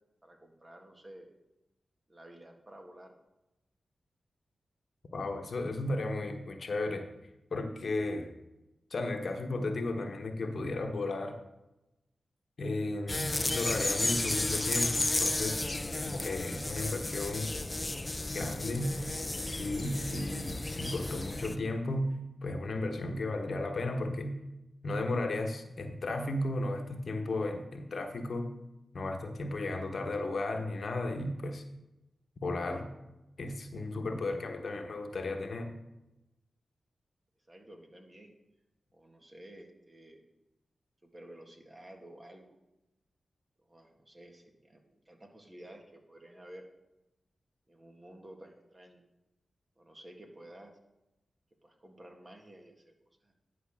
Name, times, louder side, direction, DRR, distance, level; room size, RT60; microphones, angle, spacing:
voice 1, 0.2-1.3 2.1-3.2 37.5-38.3 38.9-40.2 41.0-42.6 43.7-46.7 47.7-49.0 49.8-50.7 51.6-52.9 53.2-53.3, right 1 dB, 35° right, 3 dB, 1.8 m, -52 dB
voice 2, 5.1-7.1 7.5-8.3 8.9-11.4 12.6-15.6 16.0-17.6 18.3-19.0 19.5-24.4 24.8-28.6 28.9-31.6 32.4-32.9 33.4-35.7, left 2 dB, 65° left, 5 dB, 1.1 m, -34 dB
sound 1, 13.1-21.5, left 2 dB, 30° left, 0.6 m, -33 dB
10.5 x 4.7 x 6.2 m, 0.97 s
cardioid pair, 45°, 0 cm